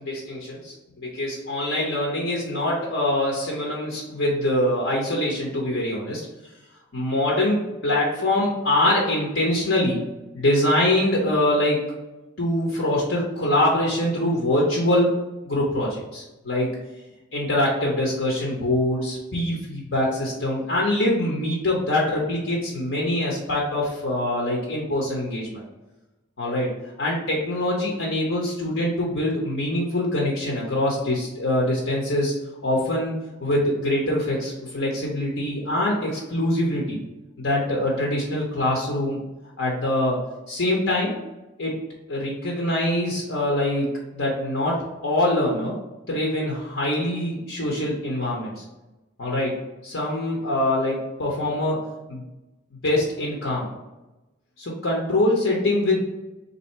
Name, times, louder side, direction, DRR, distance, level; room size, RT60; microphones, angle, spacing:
voice 1, 0.0-6.3 6.9-10.0 10.3-11.9 12.4-15.1 15.4-16.7 17.3-25.6 26.4-26.7 27.0-32.3 32.6-33.1 33.4-37.0 37.4-39.2 39.6-40.2 40.5-41.2 41.6-41.7 42.1-43.9 44.1-44.8 45.0-45.7 46.1-48.6 49.2-49.5 49.8-51.8 52.1-52.2 52.8-53.7 54.6-56.0, left 1 dB, 70° left, -3 dB, 0.9 m, -24 dB
3.6 x 2.7 x 4.3 m, 1.0 s
head